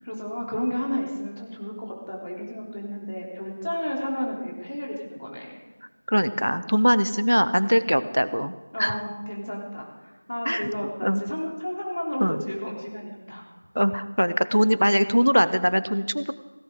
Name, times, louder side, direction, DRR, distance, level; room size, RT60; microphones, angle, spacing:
voice 1, 0.0-5.6 8.7-13.4, equal, 40° left, -2 dB, 3.6 m, -32 dB
voice 2, 6.1-8.5 8.8-9.0 10.5-10.7 11.0-11.2 12.2-12.4 13.7-16.3, equal, 85° right, 13 dB, 0.9 m, -22 dB
17.0 x 17.0 x 4.0 m, 1.2 s
figure-of-eight pair, 175°, 0 cm